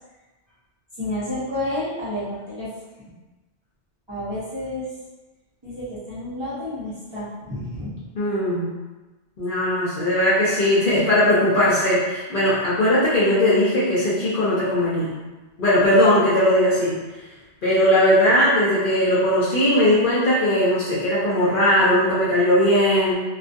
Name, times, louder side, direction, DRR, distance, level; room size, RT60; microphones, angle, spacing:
voice 1, 1.0-2.7 4.1-4.9 5.6-7.9, left 1 dB, 25° right, -13 dB, 0.7 m, -30 dB
voice 2, 8.2-8.7 9.4-15.1 15.6-17.0 17.6-23.2, left 1 dB, 55° left, -8 dB, 0.7 m, -19 dB
2.4 x 2.3 x 2.5 m, 1.2 s
omnidirectional pair, 1.2 m